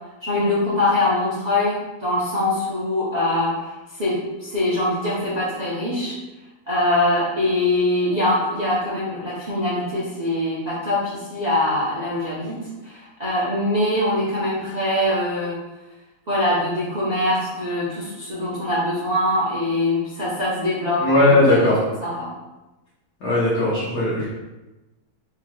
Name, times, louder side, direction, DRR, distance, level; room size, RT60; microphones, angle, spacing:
voice 1, 0.2-6.1 6.7-15.6 16.3-21.6 22.0-22.3, left 1 dB, 35° right, -9 dB, 0.7 m, -23 dB
voice 2, 21.0-21.8 23.2-24.3, left 2 dB, 80° left, -10 dB, 1.6 m, -18 dB
4.6 x 2.9 x 2.3 m, 1.1 s
omnidirectional pair, 1.8 m